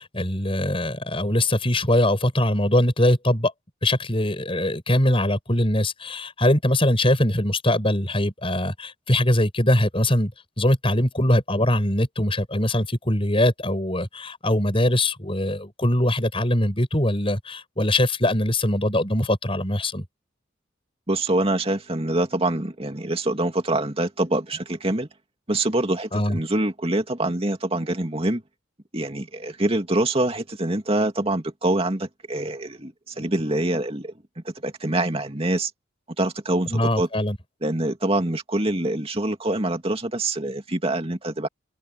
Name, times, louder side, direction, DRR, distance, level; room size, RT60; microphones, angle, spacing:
voice 1, 0.0-3.5 3.8-10.3 10.6-20.0 26.1-26.4 36.7-37.4, left 1 dB, 30° left, 6.7 m, -22 dB
voice 2, 21.1-25.1 25.5-28.4 28.9-35.7 36.2-37.1 37.6-41.5, right 1 dB, 30° right, 2.5 m, -25 dB
open air
head